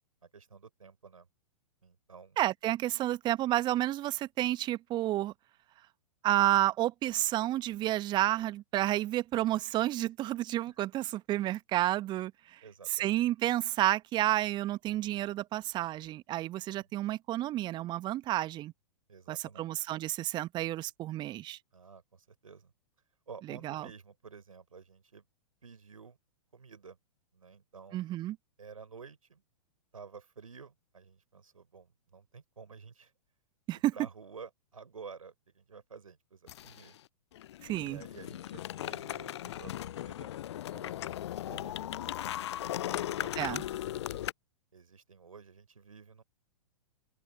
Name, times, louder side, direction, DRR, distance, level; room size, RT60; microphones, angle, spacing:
voice 1, 0.2-1.3 1.8-2.4 10.7-10.8 12.6-13.2 16.7-16.9 19.1-19.7 21.7-22.7 23.3-25.3 25.6-26.2 26.5-27.0 27.3-28.0 28.6-29.4 29.9-33.1 33.9-37.0 37.8-42.1 42.6-44.1 44.7-46.2, right 5 dB, 70° right, 5.3 m, -51 dB
voice 2, 2.4-5.3 6.2-12.6 12.9-18.7 19.3-21.6 23.5-23.9 27.9-28.4 33.7-33.9 37.6-38.0 43.4-43.6, right 14 dB, 25° right, 1.3 m, -30 dB
sound 1, 36.5-37.0 37.3-44.3, left 12 dB, 50° left, 0.6 m, -37 dB
open air
figure-of-eight pair, 110°, 18 cm